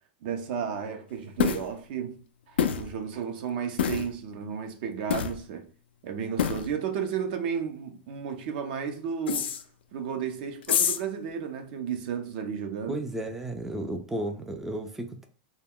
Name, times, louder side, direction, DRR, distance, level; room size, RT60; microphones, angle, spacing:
voice 1, 0.2-2.2 2.5-5.7 6.0-9.6 9.9-13.0, right 7 dB, 60° right, 0.6 m, -33 dB
sound 1, 1.4-1.6 2.6-2.9 3.8-4.1 5.1-5.4 6.4-6.7 9.3-9.6 10.6-11.0, left 8 dB, 85° left, 0.4 m, -26 dB
voice 2, 12.9-15.3, right 1 dB, 5° right, 0.3 m, -33 dB
2.2 x 2.2 x 3.5 m
hypercardioid pair, 125°, 6 cm